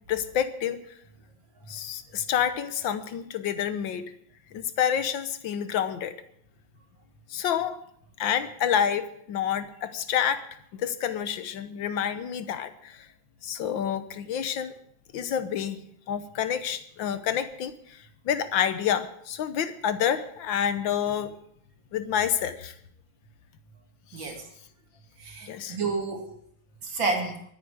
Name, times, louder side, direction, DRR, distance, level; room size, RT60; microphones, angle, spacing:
voice 1, 0.1-0.8 1.7-4.1 4.5-6.1 7.3-7.8 8.2-10.5 10.7-13.1 13.4-14.7 15.1-21.3 21.9-22.7 24.2-24.3 25.5-25.8, left 9 dB, 75° left, 11 dB, 1.7 m, -28 dB
voice 2, 24.1-24.5 25.2-26.3 26.8-27.4, right 3 dB, 75° right, 2 dB, 3.1 m, -30 dB
23.0 x 9.2 x 4.9 m, 0.68 s
omnidirectional pair, 2.1 m